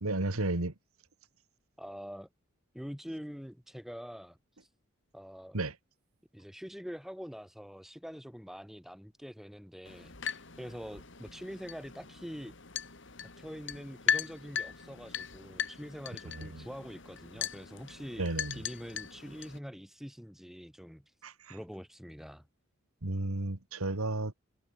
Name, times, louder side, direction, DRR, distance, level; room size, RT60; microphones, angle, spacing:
voice 1, 0.0-0.7 5.5-5.8 16.3-16.7 18.2-18.6 21.2-21.6 23.0-24.3, right 2 dB, 85° right, 2.0 m, -33 dB
voice 2, 1.8-2.3 2.7-4.7 5.1-5.6 6.3-12.5 13.2-18.3 18.5-21.1 21.5-22.4, equal, ahead, 6.9 m, -45 dB
sound 1, 9.8-19.6, left 7 dB, 60° left, 2.4 m, -38 dB
head